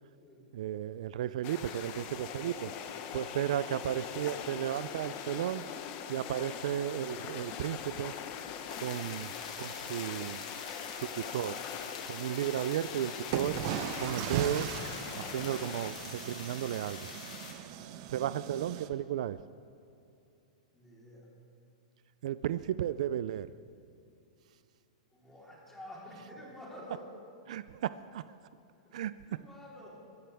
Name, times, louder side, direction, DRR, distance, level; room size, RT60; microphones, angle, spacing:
voice 1, 0.5-2.7 3.1-5.6 6.1-8.1 8.8-9.3 9.6-10.4 11.2-11.6 12.1-13.6 14.0-14.7 15.2-17.1 18.1-19.4 22.2-23.5 27.5-28.2 28.9-29.1, right 11 dB, 65° right, 15 dB, 0.4 m, -34 dB
sound 1, 1.4-15.9, left 8 dB, 40° left, 1.0 m, -42 dB
sound 2, 8.7-17.5, left 5 dB, 80° left, 2.8 m, -45 dB
sound 3, 12.5-12.6 13.3-18.9, right 9 dB, 45° right, 0.8 m, -38 dB
voice 2, 20.7-21.3 25.1-27.1 28.8-29.0 29.3-30.0, left 1 dB, 5° left, -5 dB, 3.7 m, -49 dB
23.0 x 13.5 x 3.5 m, 2.6 s
supercardioid pair, 150°, 4 cm